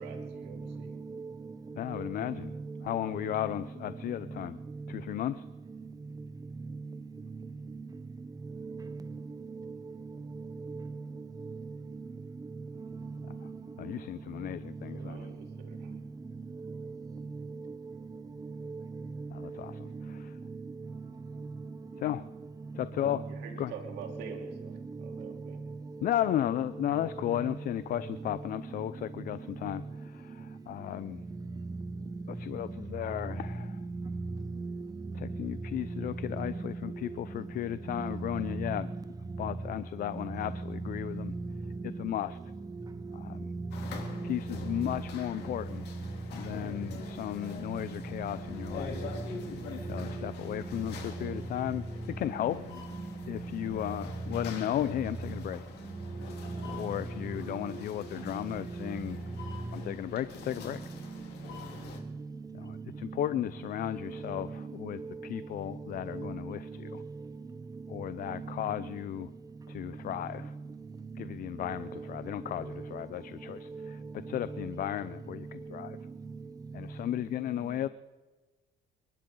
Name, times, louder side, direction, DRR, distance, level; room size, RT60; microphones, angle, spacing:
voice 1, 0.0-0.9 14.9-15.9 23.3-25.6, right 6 dB, 85° right, 3.3 m, -46 dB
voice 2, 0.6-1.6 1.9-3.7 4.3-4.5 5.7-5.9 7.3-7.9 8.5-10.9 11.2-12.1 12.8-14.0 14.7-14.8 15.1-15.2 15.7-16.0 16.6-17.3 17.6-17.8 18.0-19.0 19.4-19.5 19.9-20.6 20.9-21.0 22.1-22.3 22.7-22.8 23.1-23.3 24.2-24.5 24.9-25.4 26.2-27.4 28.1-28.3 28.6-28.7 33.8-34.9 35.3-35.4 35.9-36.1 36.3-37.0 38.0-38.7 40.6-40.8 41.1-41.5 43.4-43.7 44.1-45.1 61.0-61.3 62.4-63.3 64.0-65.4 65.7-65.9 66.1-67.0 67.9-69.0 70.0-70.2 71.1-72.1 73.7-74.6 75.8-76.4 77.6-77.7, right 4 dB, 20° right, 1.0 m, -40 dB
voice 3, 1.8-2.5 2.8-4.6 4.9-5.4 13.8-15.3 19.3-19.8 22.0-22.2 22.7-23.2 23.6-23.7 26.0-29.8 30.1-31.2 32.4-33.7 35.2-38.9 39.4-41.3 42.0-42.4 43.1-43.4 44.2-45.8 46.3-49.0 49.9-51.8 52.2-52.6 53.3-55.6 56.8-59.2 59.7-60.8 62.6-66.9 67.9-69.3 69.7-70.5 71.2-74.0 74.3-76.0 76.7-77.9, left 12 dB, 60° left, 0.6 m, -35 dB
sound 1, 43.7-62.0, left 6 dB, 80° left, 3.1 m, -46 dB
29.5 x 12.0 x 3.9 m
cardioid pair, 110°, 17 cm